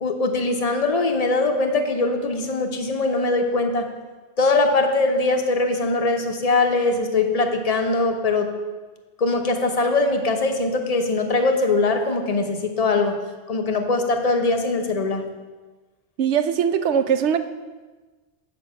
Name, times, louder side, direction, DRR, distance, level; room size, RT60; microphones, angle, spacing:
voice 1, 0.0-3.9 4.4-8.5 9.2-13.2 13.5-15.2, left 3 dB, 40° left, 5 dB, 0.8 m, -21 dB
voice 2, 16.2-17.4, right 8 dB, 80° right, 10 dB, 0.9 m, -20 dB
6.8 x 5.2 x 6.8 m, 1.3 s
omnidirectional pair, 1.2 m